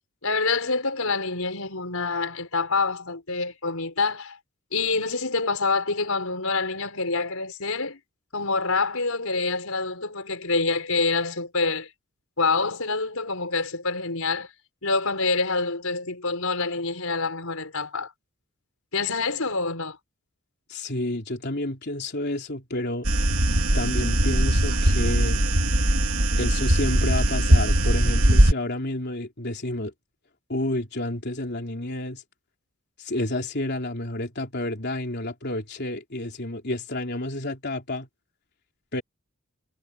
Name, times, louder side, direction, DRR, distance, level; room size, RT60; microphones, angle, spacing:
voice 1, 0.2-4.4 4.7-8.0 8.3-11.9 12.4-14.5 14.8-18.1 18.9-20.0, left 3 dB, 75° left, 5.3 m, -26 dB
voice 2, 20.7-23.1 23.7-25.4 26.4-29.9 30.5-32.2 33.0-38.1 38.9-39.0, left 1 dB, 50° left, 3.5 m, -30 dB
sound 1, 23.0-28.5, right 1 dB, 75° right, 2.7 m, -20 dB
head